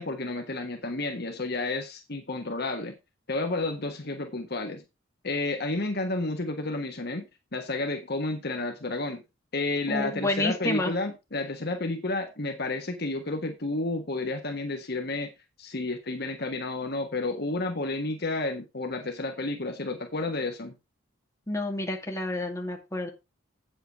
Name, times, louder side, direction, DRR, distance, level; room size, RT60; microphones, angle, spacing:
voice 1, 0.0-2.9 3.3-4.8 5.2-7.3 7.5-9.2 9.5-15.3 15.6-20.7, left 2 dB, 50° left, 5 dB, 1.3 m, -31 dB
voice 2, 9.9-10.9 21.5-23.1, left 1 dB, 15° left, 1 dB, 2.2 m, -29 dB
8.8 x 7.8 x 4.5 m, 0.25 s
head